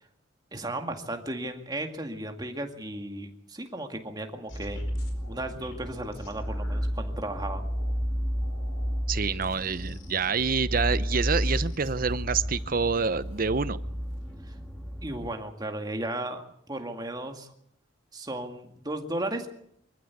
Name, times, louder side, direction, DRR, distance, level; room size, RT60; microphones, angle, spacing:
voice 1, 0.5-4.8 5.3-7.6 14.5-14.6 15.0-17.5 18.1-19.5, right 1 dB, 20° right, 5 dB, 2.1 m, -35 dB
sound 1, 4.0-6.9 7.3-8.0 8.4-12.6 12.9-13.6 14.0-14.3, left 3 dB, 75° left, 4.6 m, -55 dB
sound 2, 4.5-15.3, equal, ahead, 2.1 m, -32 dB
voice 2, 9.1-13.8, right 5 dB, 45° right, 15 dB, 0.8 m, -27 dB
24.0 x 14.0 x 8.3 m, 0.71 s
head